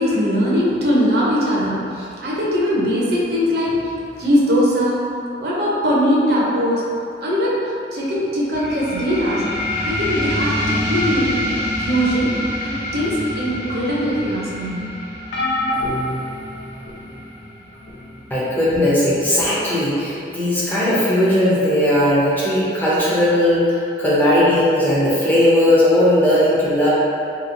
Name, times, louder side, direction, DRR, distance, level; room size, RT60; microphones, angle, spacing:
voice 1, 0.0-5.1 5.4-6.9 7.2-7.6 7.9-9.5 9.8-11.4 11.8-14.9, equal, 60° right, -6 dB, 0.6 m, -20 dB
sound 1, 8.5-19.6, left 1 dB, 50° left, 1.0 m, -27 dB
sound 2, 15.3-17.1 17.9-18.1 19.4-19.5, left 1 dB, 80° left, 0.5 m, -25 dB
voice 2, 18.3-26.9, left 1 dB, 10° left, -9 dB, 0.5 m, -17 dB
2.9 x 2.7 x 2.5 m, 2.6 s
head